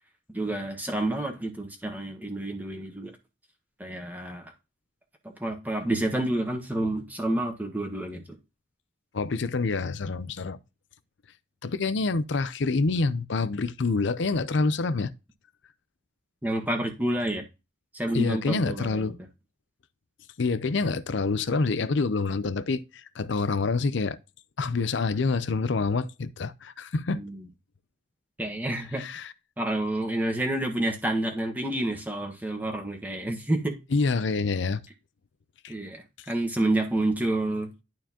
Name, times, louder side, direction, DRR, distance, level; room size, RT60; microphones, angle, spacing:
voice 1, 0.3-3.1 3.8-4.5 5.4-8.2 16.4-17.4 17.9-19.2 27.1-27.5 28.4-29.0 29.6-33.8 35.7-37.7, right 1 dB, 10° right, 1.4 m, -29 dB
voice 2, 9.1-10.6 11.6-15.1 18.1-19.2 20.4-24.2 24.6-27.2 28.9-29.3 33.9-34.8 35.6-35.7, left 3 dB, 65° left, 0.5 m, -27 dB
11.5 x 4.4 x 2.9 m
head